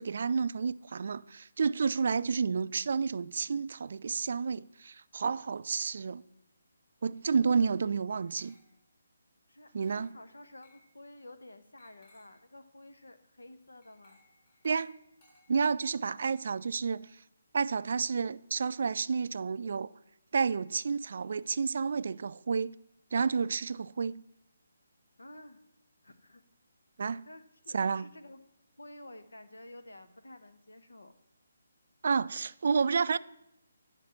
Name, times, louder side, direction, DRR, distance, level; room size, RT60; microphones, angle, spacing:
voice 1, 0.0-6.2 7.0-8.5 9.7-10.1 14.6-15.0 15.5-17.2 17.5-19.9 20.3-22.8 23.1-24.2 27.0-27.2 27.7-28.1 32.0-33.2, right 5 dB, 55° right, 0.3 m, -30 dB
Glass, 8.1-9.0 9.8-10.2 10.6-10.9 11.8-12.4 13.8-15.9, left 1 dB, 40° left, 4.2 m, -63 dB
voice 2, 9.5-14.2 25.2-25.6 26.0-26.4 27.3-28.4 28.8-31.1, left 1 dB, 85° left, 1.1 m, -51 dB
10.0 x 5.1 x 5.8 m
figure-of-eight pair, 150°, 0 cm